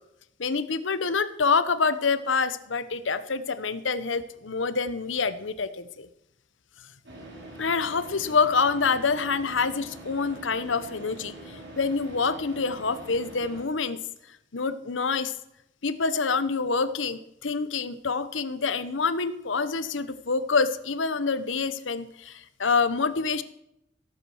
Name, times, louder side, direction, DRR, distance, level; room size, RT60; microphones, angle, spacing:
voice 1, 0.4-6.1 7.6-14.0 14.5-15.3 15.8-23.4, left 4 dB, 80° left, 14 dB, 0.9 m, -26 dB
Car / Idling, 7.0-13.6, right 1 dB, 65° right, 4.5 m, -44 dB
17.0 x 8.6 x 6.3 m, 0.82 s
head